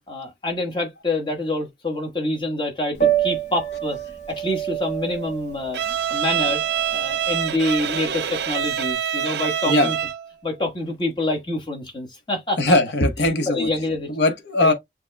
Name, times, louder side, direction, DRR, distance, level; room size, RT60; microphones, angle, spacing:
voice 1, 0.1-6.6 6.9-10.0 10.4-12.6 13.2-14.1 14.6-14.7, left 2 dB, 25° left, 1.3 m, -27 dB
Piano, 2.9-8.9, right 10 dB, 40° left, 1.0 m, -28 dB
Bowed string instrument, 5.7-10.3, right 10 dB, 65° right, 0.5 m, -25 dB
voice 2, 12.6-13.7 14.1-14.7, left 1 dB, 75° left, 1.0 m, -19 dB
7.2 x 2.9 x 2.2 m
head